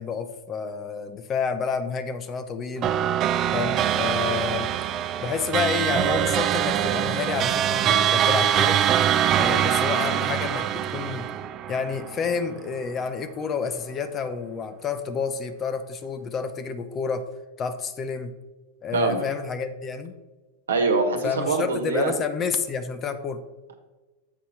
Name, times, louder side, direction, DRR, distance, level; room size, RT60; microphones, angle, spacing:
voice 1, 0.0-2.9 3.5-4.7 5.2-8.8 9.3-11.3 11.7-17.3 17.6-18.3 18.8-20.2 21.2-23.4, left 6 dB, 25° left, 9 dB, 0.6 m, -29 dB
sound 1, 2.8-12.5, right 10 dB, 30° right, 0.4 m, -23 dB
voice 2, 18.9-19.2 20.7-22.1, right 4 dB, 70° right, 5 dB, 1.2 m, -23 dB
7.8 x 5.5 x 4.3 m, 1.2 s
figure-of-eight pair, 90°, 0 cm